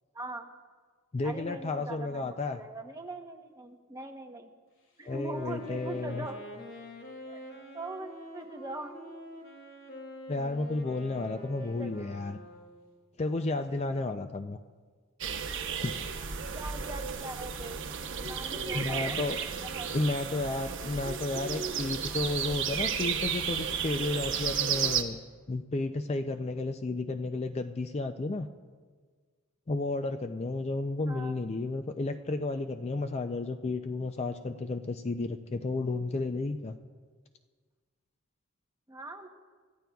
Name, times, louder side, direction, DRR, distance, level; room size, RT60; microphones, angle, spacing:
voice 1, 0.1-0.5 1.2-4.5 5.0-6.4 7.2-7.5 7.7-9.0 11.5-12.0 16.5-17.8 18.1-19.2 19.5-19.9 31.0-31.4 38.9-39.3, right 2 dB, 15° right, 4 dB, 0.9 m, -41 dB
voice 2, 1.1-2.6 5.1-6.3 10.3-12.4 13.2-14.6 15.8-15.9 18.7-19.4 19.9-25.2 25.5-28.5 29.7-36.7, left 2 dB, 30° left, 8 dB, 0.4 m, -32 dB
Wind instrument woodwind instrument, 5.0-12.9, left 1 dB, 60° left, 2.1 m, -46 dB
sound 1, 15.2-25.0, right 7 dB, 60° right, 0.9 m, -33 dB
25.0 x 14.0 x 2.3 m, 1.5 s
head